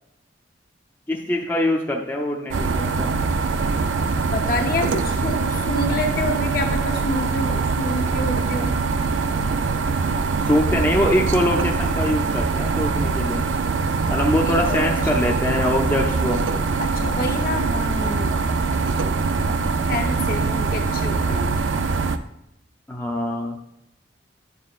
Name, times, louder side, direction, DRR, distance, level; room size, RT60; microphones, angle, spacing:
voice 1, 1.1-3.1 10.4-13.5 14.1-16.4 19.6-19.8 22.9-23.6, left 1 dB, 10° left, 0 dB, 0.5 m, -23 dB
sound 1, 2.5-22.2, right 4 dB, 90° right, 0.4 m, -23 dB
voice 2, 4.3-8.8 14.4-15.1 16.8-18.4 19.9-21.6, left 2 dB, 50° left, 2 dB, 0.9 m, -28 dB
9.5 x 6.2 x 2.4 m, 0.83 s
head